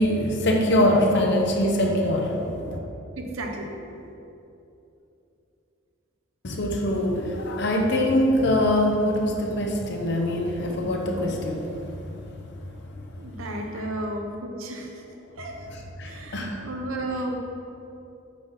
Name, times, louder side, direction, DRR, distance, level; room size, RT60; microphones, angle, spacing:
voice 1, 0.0-2.8 6.4-12.0 13.0-13.1 16.0-16.6, left 1 dB, 55° left, 1 dB, 0.8 m, -23 dB
voice 2, 3.2-3.8 13.2-15.0 15.4-15.6 16.0-17.4, right 1 dB, 85° right, 2 dB, 0.9 m, -33 dB
8.4 x 3.8 x 5.7 m, 2.8 s
head